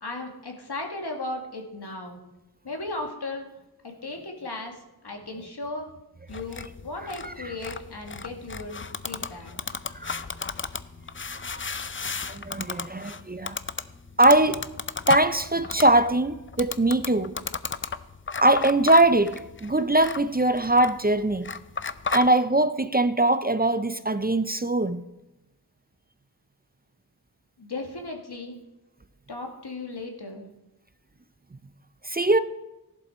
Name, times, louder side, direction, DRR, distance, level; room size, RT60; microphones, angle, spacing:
voice 1, 0.0-2.2 2.6-3.5 3.8-4.7 5.0-5.9 6.3-9.5 27.6-28.6 29.3-30.5, left 2 dB, 85° left, 2.1 m, -36 dB
sound 1, 6.3-22.3, left 5 dB, 30° left, 0.5 m, -35 dB
voice 2, 11.3-11.8 12.3-13.6 14.2-14.6 15.1-17.3 18.4-21.5 22.1-25.1 32.0-32.4, right 2 dB, 25° right, 0.5 m, -22 dB
14.5 x 11.5 x 4.4 m
wide cardioid pair, 60°, 39 cm